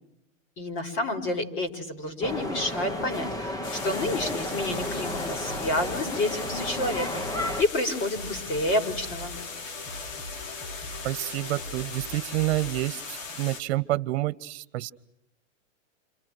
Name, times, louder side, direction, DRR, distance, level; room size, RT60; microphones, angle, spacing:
voice 1, 0.6-7.2 7.6-9.3, left 1 dB, 30° left, 5 dB, 4.9 m, -29 dB
sound 1, 2.2-7.6, left 1 dB, 10° left, 1.1 m, -33 dB
sound 2, 3.6-13.6, left 4 dB, 75° left, 4.4 m, -39 dB
sound 3, 4.0-12.8, left 2 dB, 60° left, 6.1 m, -43 dB
voice 2, 11.0-14.9, right 16 dB, 55° right, 16 dB, 1.5 m, -28 dB
30.0 x 28.0 x 6.4 m, 0.80 s
supercardioid pair, 155°, 39 cm